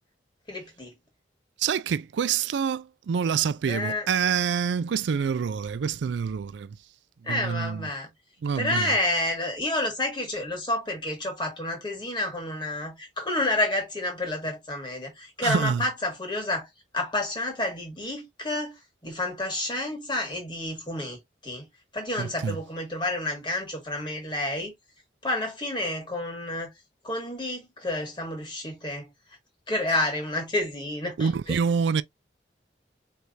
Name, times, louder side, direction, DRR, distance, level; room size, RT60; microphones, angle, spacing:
voice 1, 0.5-0.9 3.7-4.1 7.2-8.1 8.5-16.7 16.9-18.7 19.0-21.7 21.9-24.7 25.2-26.7 27.0-29.1 29.7-31.6, left 1 dB, 25° left, 1.7 m, -29 dB
voice 2, 1.6-6.8 7.2-7.9 8.4-9.0 15.4-15.9 22.2-22.6 31.2-32.0, right 6 dB, 75° right, 0.3 m, -26 dB
4.5 x 3.3 x 2.5 m
head